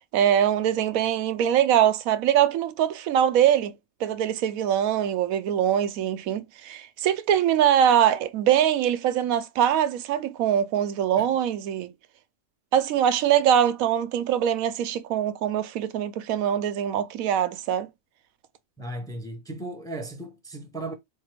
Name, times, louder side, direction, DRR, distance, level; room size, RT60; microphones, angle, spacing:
voice 1, 0.0-3.7 4.0-11.9 12.7-17.9, right 10 dB, 90° right, 1.0 m, -23 dB
voice 2, 18.8-21.0, right 2 dB, 5° left, 0.6 m, -36 dB
4.0 x 3.2 x 3.3 m
omnidirectional pair, 1.4 m